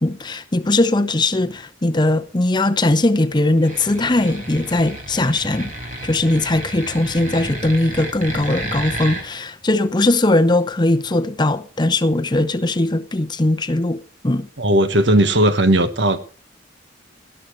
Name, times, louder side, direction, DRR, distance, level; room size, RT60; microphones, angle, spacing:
voice 1, 0.0-14.0 14.2-14.5, left 2 dB, 25° left, 0.7 m, -19 dB
sound 1, 3.6-9.2, right 2 dB, 45° right, 5.9 m, -31 dB
voice 2, 14.6-16.2, right 1 dB, 75° right, 1.3 m, -16 dB
18.0 x 12.5 x 3.1 m
head